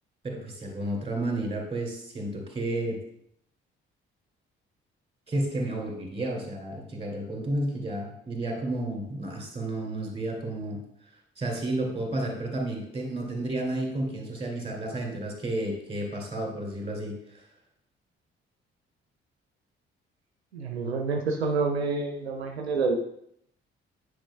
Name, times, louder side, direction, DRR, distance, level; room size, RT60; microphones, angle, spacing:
voice 1, 0.2-3.0 5.3-10.8 11.4-17.4, right 1 dB, 20° right, 1 dB, 2.2 m, -31 dB
voice 2, 20.5-22.9, right 4 dB, 85° right, 3 dB, 0.5 m, -28 dB
8.8 x 5.0 x 2.2 m, 0.72 s
figure-of-eight pair, 40°, 31 cm